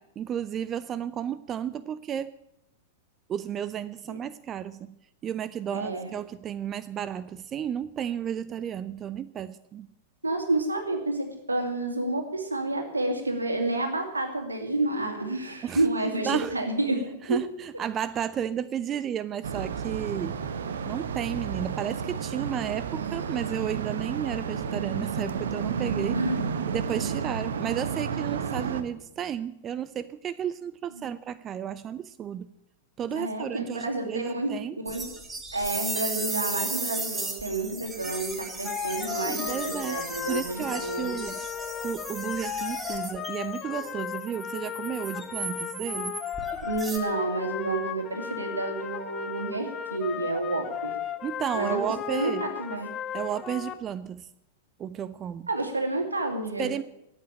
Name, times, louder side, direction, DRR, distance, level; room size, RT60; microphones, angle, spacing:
voice 1, 0.0-2.4 3.3-4.9 5.2-9.9 15.6-15.8 16.2-16.5 17.2-20.4 20.9-26.2 26.7-32.5 33.0-34.8 39.5-40.0 40.3-41.4 41.8-46.2 51.2-52.5 53.1-54.3 54.8-55.5 56.6-56.8, right 9 dB, 30° right, 16 dB, 0.5 m, -33 dB
voice 2, 5.7-6.1 10.2-17.4 26.1-26.5 30.9-31.1 33.1-34.5 34.8-35.0 35.5-41.2 46.6-51.0 51.5-52.9 55.5-56.7, right 2 dB, 85° right, 4 dB, 2.5 m, -30 dB
sound 1, 19.4-28.8, right 6 dB, 70° right, 1.0 m, -31 dB
sound 2, 34.9-47.0, right 3 dB, 10° right, 2.1 m, -36 dB
sound 3, 38.6-53.7, left 10 dB, 30° left, 1.1 m, -36 dB
13.0 x 8.5 x 8.7 m, 0.85 s
figure-of-eight pair, 95°, 0 cm